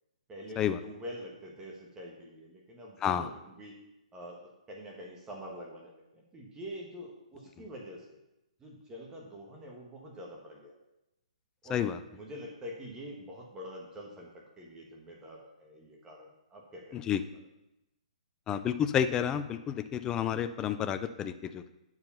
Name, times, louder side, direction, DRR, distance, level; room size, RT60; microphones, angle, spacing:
voice 1, 0.3-3.7 4.1-8.0 8.6-10.8 11.6-11.8 12.1-17.0, equal, 15° right, -1 dB, 1.3 m, -46 dB
voice 2, 11.7-12.0 16.9-17.2 18.5-21.7, left 9 dB, 15° left, 11 dB, 0.4 m, -30 dB
9.5 x 4.8 x 5.6 m, 0.91 s
hypercardioid pair, 150°, 4 cm